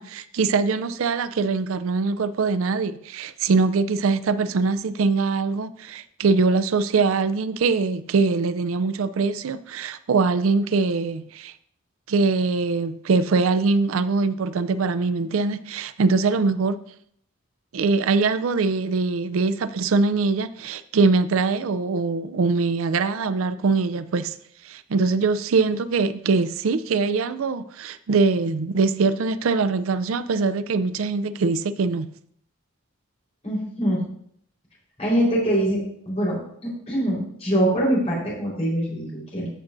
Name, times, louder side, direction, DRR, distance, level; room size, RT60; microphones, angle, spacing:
voice 1, 0.0-11.5 12.1-16.8 17.7-24.4 24.6-32.1, right 4 dB, 80° right, 0.4 m, -22 dB
voice 2, 33.4-34.0 35.0-35.8 36.1-36.4 36.6-39.5, right 1 dB, 30° left, 4.2 m, -23 dB
14.0 x 6.6 x 2.6 m
head